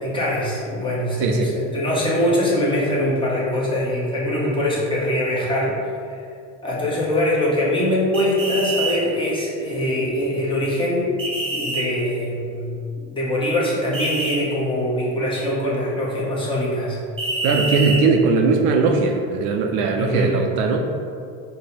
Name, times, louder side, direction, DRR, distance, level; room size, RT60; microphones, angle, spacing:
voice 1, 0.0-5.7 6.1-6.2 6.6-11.2 11.5-12.8 13.1-17.0 20.0-20.3, left 1 dB, 15° left, -5 dB, 0.9 m, -23 dB
sound 1, 8.1-9.0 11.2-11.8 13.9-14.4 17.2-18.0, right 2 dB, 15° right, 0.8 m, -26 dB
voice 2, 17.4-20.8, right 4 dB, 55° right, 3 dB, 0.5 m, -19 dB
5.3 x 2.2 x 4.1 m, 2.4 s
cardioid pair, 145°, 34 cm